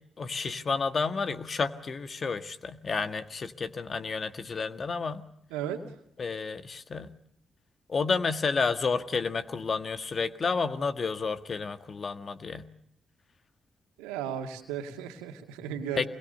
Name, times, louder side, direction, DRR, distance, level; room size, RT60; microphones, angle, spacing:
voice 1, 0.2-5.2 6.2-7.1 7.9-12.6 16.0-16.1, left 4 dB, 50° left, 10 dB, 1.7 m, -30 dB
voice 2, 14.0-16.1, right 9 dB, 90° right, 5 dB, 2.2 m, -35 dB
26.0 x 22.0 x 6.8 m, 0.73 s
hypercardioid pair, 45°, 0 cm